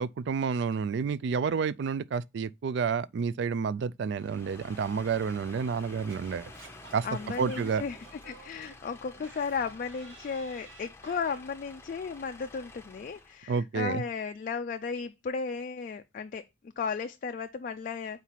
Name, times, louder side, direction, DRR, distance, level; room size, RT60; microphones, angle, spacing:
voice 1, 0.0-6.5 6.9-7.1 7.4-7.8 13.5-14.0, right 5 dB, 60° right, 0.3 m, -30 dB
sound 1, 4.1-13.4, left 2 dB, 15° left, 0.7 m, -50 dB
Singing / Scratching (performance technique), 6.1-11.4, right 3 dB, 80° right, 2.2 m, -52 dB
voice 2, 7.0-16.4 16.8-18.2, left 5 dB, 45° left, 0.3 m, -35 dB
4.5 x 4.0 x 5.7 m
head